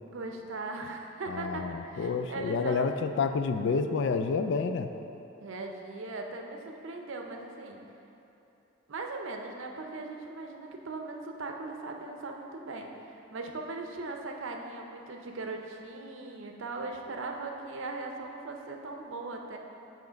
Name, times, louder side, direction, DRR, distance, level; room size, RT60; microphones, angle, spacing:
voice 1, 0.0-2.9 5.4-7.8 8.9-19.6, right 3 dB, 70° right, 2 dB, 0.6 m, -39 dB
voice 2, 1.3-4.9, left 5 dB, 60° left, 8 dB, 0.3 m, -29 dB
7.9 x 3.1 x 5.0 m, 2.9 s
head